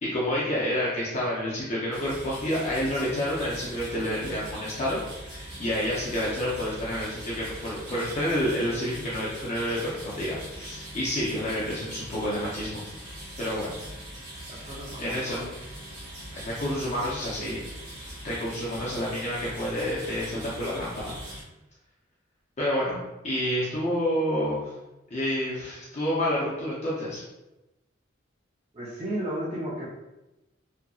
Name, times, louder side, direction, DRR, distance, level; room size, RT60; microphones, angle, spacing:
voice 1, 0.0-12.9 13.4-13.8 14.4-14.7 15.0-15.4 16.3-17.6 18.2-21.2 22.6-23.0 23.2-24.7 25.1-27.2, equal, 35° left, -7 dB, 0.5 m, -29 dB
sound 1, 1.9-21.4, right 1 dB, 55° right, 1.1 m, -41 dB
voice 2, 14.5-15.5 28.7-29.8, right 1 dB, 30° right, -8 dB, 0.5 m, -34 dB
2.7 x 2.5 x 2.3 m, 0.98 s
head